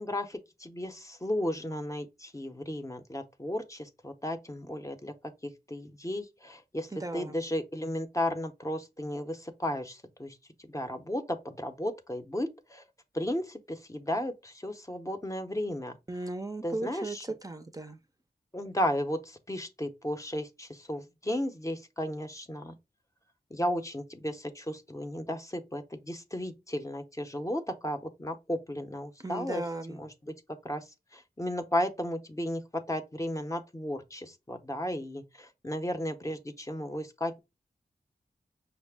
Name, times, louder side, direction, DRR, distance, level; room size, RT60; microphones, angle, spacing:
voice 1, 0.0-5.1 5.4-10.4 10.7-12.8 13.1-15.9 16.6-17.2 18.5-22.7 23.5-29.6 29.9-30.1 30.6-30.8 31.1-37.4, left 1 dB, 20° left, 0.7 m, -34 dB
voice 2, 6.9-7.4 16.1-18.0 29.2-30.0, right 2 dB, 20° right, 0.5 m, -36 dB
5.7 x 2.1 x 3.4 m
wide cardioid pair, 75°, 17 cm